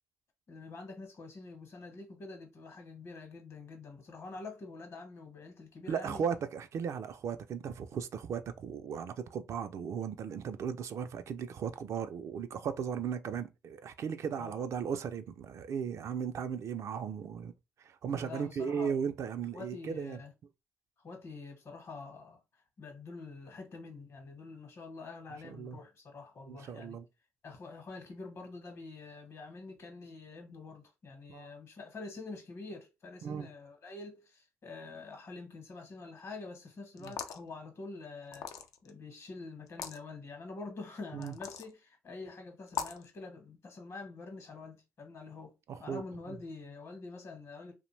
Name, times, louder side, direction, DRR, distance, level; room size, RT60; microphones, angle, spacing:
voice 1, 0.5-6.2 14.3-14.6 18.2-18.9 19.5-20.3 21.0-22.4 22.8-27.0 27.4-38.5 38.8-47.7, left 3 dB, 55° left, 0.9 m, -46 dB
voice 2, 5.9-17.5 17.8-20.2 25.4-25.8 26.5-27.1 31.3-31.5 33.2-33.5 37.0-37.1 41.1-41.3 45.7-46.0 46.3-46.4, right 7 dB, 65° right, 0.4 m, -36 dB
sound 1, 37.0-37.5 38.3-38.9 39.7-40.0 41.2-41.7 42.7-43.1, left 7 dB, 85° left, 0.4 m, -39 dB
2.5 x 2.1 x 3.1 m
cardioid pair, 80°, 6 cm